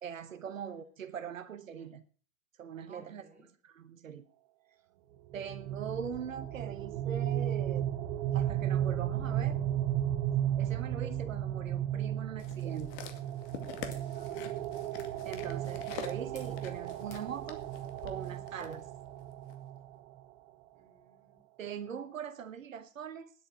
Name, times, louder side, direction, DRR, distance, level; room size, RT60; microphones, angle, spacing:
voice 1, 0.0-2.0 2.6-3.2 3.6-4.2 5.3-7.9 8.3-9.6 10.6-13.0 15.2-17.7 18.0-18.9 21.6-23.3, right 7 dB, 90° right, 11 dB, 1.0 m, -41 dB
voice 2, 2.9-3.5 14.1-14.9 20.7-21.4, right 3 dB, 20° right, 6 dB, 5.4 m, -60 dB
sound 1, 5.3-20.2, right 11 dB, 55° right, 1.2 m, -34 dB
sound 2, 12.4-18.8 19.5-19.6, left 9 dB, 50° left, 2.2 m, -47 dB
sound 3, 12.6-18.1, left 3 dB, 75° left, 4.5 m, -58 dB
10.0 x 8.6 x 9.1 m, 0.43 s
hypercardioid pair, 95°, 39 cm